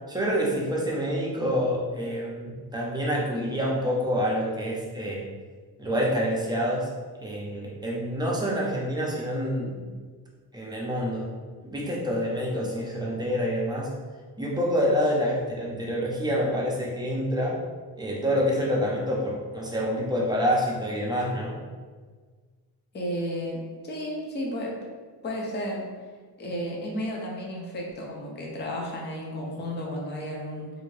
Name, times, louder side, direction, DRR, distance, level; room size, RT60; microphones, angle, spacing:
voice 1, 0.1-5.2 5.8-6.9 7.2-9.8 10.5-11.3 11.6-13.9 14.4-17.6 18.0-21.5, equal, 10° right, -4 dB, 0.6 m, -27 dB
voice 2, 22.9-24.8 25.2-25.9 26.4-30.7, equal, 25° left, -2 dB, 0.6 m, -33 dB
3.3 x 2.6 x 3.2 m, 1.5 s
wide cardioid pair, 135°, 40 cm